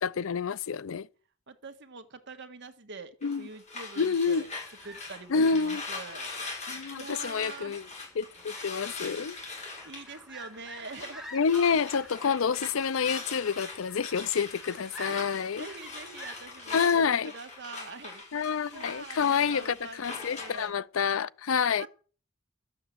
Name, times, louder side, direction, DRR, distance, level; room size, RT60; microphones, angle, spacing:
voice 1, 0.0-1.1 3.2-3.5 4.0-4.4 5.3-5.8 6.7-7.9 8.2-9.4 11.3-15.7 16.7-17.3 18.3-21.9, left 6 dB, 75° left, 0.5 m, -28 dB
voice 2, 1.5-4.5 4.8-6.4 7.0-7.8 9.8-11.3 15.1-17.0 17.3-18.2 18.7-20.8 21.8-21.9, right 3 dB, 60° right, 1.7 m, -44 dB
sound 1, 3.2-11.2 11.4-20.7, left 3 dB, 35° left, 6.6 m, -42 dB
sound 2, 4.4-16.8, equal, 5° right, 3.3 m, -50 dB
12.5 x 7.8 x 7.9 m
head